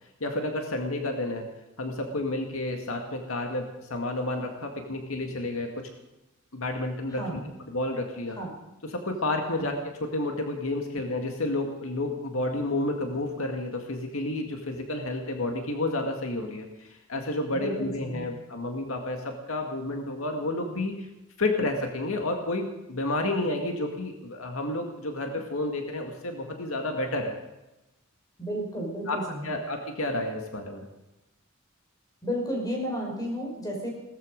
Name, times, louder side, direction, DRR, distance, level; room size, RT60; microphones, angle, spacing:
voice 1, 0.2-1.5 1.8-5.7 6.5-7.4 7.7-8.4 8.9-9.7 10.0-21.1 21.4-27.3 29.1-29.2 29.4-30.9, left 2 dB, 75° left, 3 dB, 2.0 m, -30 dB
voice 2, 7.1-7.5 8.4-8.5 9.6-9.7 17.5-18.3 28.4-29.5 32.2-33.9, equal, 20° left, -1 dB, 5.4 m, -32 dB
18.0 x 14.0 x 5.2 m, 0.99 s
head